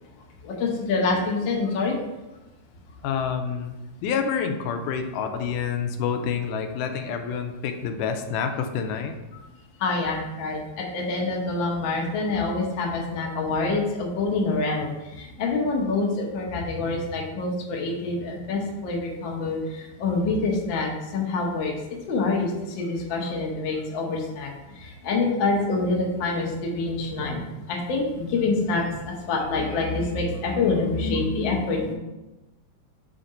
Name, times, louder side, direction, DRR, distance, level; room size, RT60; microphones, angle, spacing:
voice 1, 0.4-1.9 9.8-21.7 22.1-24.5 24.7-31.9, left 3 dB, 65° left, -1 dB, 1.2 m, -26 dB
voice 2, 3.0-3.8 4.0-9.2, left 6 dB, 85° left, 6 dB, 2.1 m, -28 dB
5.1 x 3.8 x 5.5 m, 1.0 s
omnidirectional pair, 3.6 m